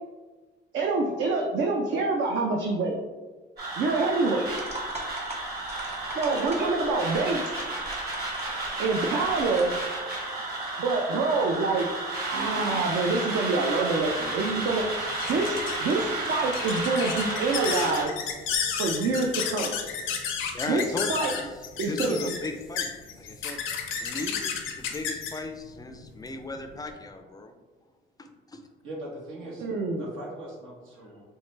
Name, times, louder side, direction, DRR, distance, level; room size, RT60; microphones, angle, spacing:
voice 1, 0.7-3.0 3.8-4.5 6.2-7.4 8.8-9.7 10.8-11.9 12.3-18.1 18.8-19.7 20.7-20.8 21.1-21.3 21.8-22.3 29.6-30.1, right 3 dB, 70° right, 1 dB, 0.5 m, -26 dB
sound 1, 3.6-18.0, right 2 dB, 50° right, 1.5 m, -32 dB
sound 2, 4.5-9.8, right 2 dB, 35° right, 0.9 m, -42 dB
sound 3, 14.1-26.9, left 6 dB, 80° left, 0.6 m, -33 dB
voice 2, 20.5-21.5 21.9-22.9 23.2-23.6 24.0-27.5 28.2-28.6, left 2 dB, 20° left, 5 dB, 0.3 m, -37 dB
voice 3, 28.8-29.6 29.9-31.4, right 1 dB, 90° right, -3 dB, 1.1 m, -40 dB
4.5 x 2.1 x 3.2 m, 1.3 s
cardioid pair, 90°, 20 cm